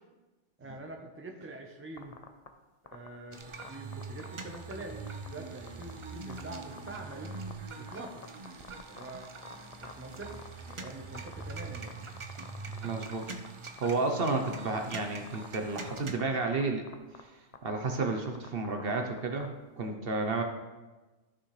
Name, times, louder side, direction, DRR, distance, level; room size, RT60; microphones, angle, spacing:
voice 1, 0.6-2.2 2.9-5.0 5.3-7.3 7.8-8.2 8.9-10.4 10.8-11.9, right 2 dB, 10° right, 2 dB, 0.9 m, -45 dB
sound 1, 2.0-2.5 2.9-3.1 3.6-4.8 5.1-5.3 5.7-5.9 6.3-6.4 6.8-7.5 7.9-10.9 11.1-11.9 12.2-12.8 13.1-13.9 14.4-15.0 15.3-15.5 15.8-16.3 16.6-16.7 16.9-17.2 17.5-19.5, left 6 dB, 45° left, 0.6 m, -46 dB
sound 2, 3.3-16.1, right 3 dB, 35° right, 0.5 m, -43 dB
voice 2, 12.8-13.4 13.8-16.8 17.2-17.3 17.6-19.5 19.8-20.4, right 3 dB, 60° right, 4 dB, 1.0 m, -31 dB
13.5 x 6.2 x 3.3 m, 1.2 s
omnidirectional pair, 1.2 m